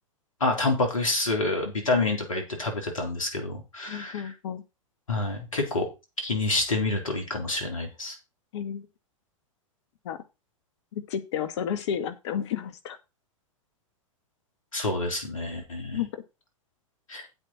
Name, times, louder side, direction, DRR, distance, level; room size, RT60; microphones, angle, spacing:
voice 1, 0.4-4.3 5.1-5.9 6.2-8.2 14.7-16.0 17.1-17.2, left 2 dB, 80° left, 3 dB, 3.8 m, -28 dB
voice 2, 3.9-4.6 8.5-8.9 10.0-10.2 10.9-13.0 15.9-16.2, left 8 dB, 55° left, 11 dB, 1.9 m, -32 dB
9.2 x 8.1 x 4.4 m, 0.27 s
figure-of-eight pair, 100°, 17 cm